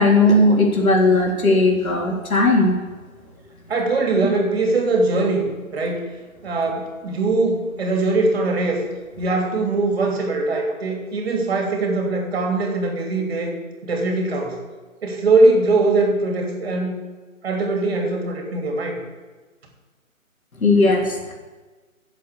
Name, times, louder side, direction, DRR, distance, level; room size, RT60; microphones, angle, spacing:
voice 1, 0.0-2.7 20.6-21.3, left 2 dB, 85° left, -1 dB, 3.9 m, -17 dB
voice 2, 3.7-6.1 6.4-8.8 9.2-13.5 13.8-14.6 15.0-16.9 17.4-19.0, right 2 dB, 45° right, 1 dB, 3.0 m, -21 dB
12.5 x 7.5 x 8.3 m, 1.3 s
hypercardioid pair, 160°, 41 cm